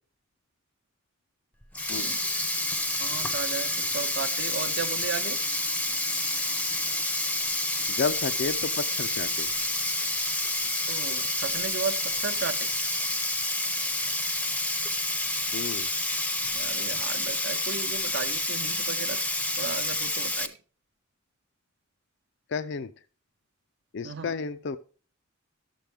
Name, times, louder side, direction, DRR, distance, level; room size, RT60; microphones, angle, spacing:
Sink (filling or washing), 1.6-20.5, left 1 dB, 5° left, 0.6 m, -29 dB
voice 1, 3.0-5.4 10.9-12.7 16.5-19.2 19.6-20.5 24.0-24.3, right 5 dB, 60° right, 9 dB, 0.8 m, -35 dB
voice 2, 8.0-9.5 15.5-15.9 22.5-22.9 23.9-24.8, left 5 dB, 60° left, 12 dB, 0.4 m, -31 dB
12.5 x 7.4 x 3.4 m, 0.39 s
head